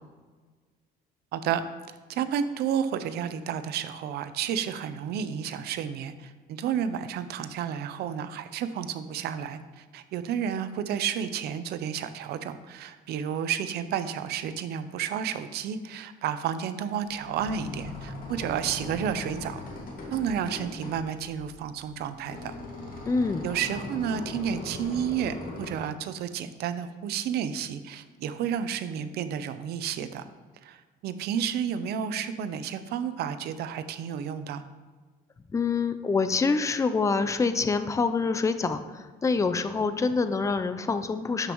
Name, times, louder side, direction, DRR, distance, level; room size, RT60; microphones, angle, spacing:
voice 1, 1.3-1.6 2.1-19.6 20.1-22.5 23.4-30.2 30.6-34.6, right 8 dB, 75° right, 11 dB, 0.6 m, -31 dB
sound 1, 17.0-25.7, left 2 dB, 60° left, 2.0 m, -40 dB
voice 2, 23.1-23.5 35.5-41.5, left 4 dB, 20° left, 10 dB, 0.5 m, -26 dB
12.5 x 5.3 x 3.1 m, 1.4 s
cardioid pair, 110°, 17 cm